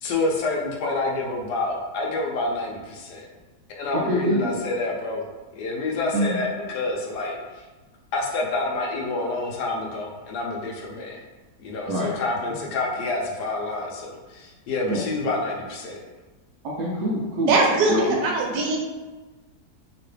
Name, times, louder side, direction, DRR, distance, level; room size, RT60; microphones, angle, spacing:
voice 1, 0.0-3.3 3.8-5.2 5.5-7.4 8.1-11.2 11.6-16.0, left 2 dB, 75° left, -1 dB, 1.1 m, -28 dB
voice 2, 4.1-4.6 6.1-6.4 11.9-12.1 14.9-15.0 16.6-17.5 17.9-18.2, equal, 70° right, -6 dB, 1.0 m, -25 dB
voice 3, 17.5-17.9 18.2-18.8, right 3 dB, 85° right, -1 dB, 1.4 m, -20 dB
3.0 x 2.9 x 3.1 m, 1.2 s
omnidirectional pair, 1.8 m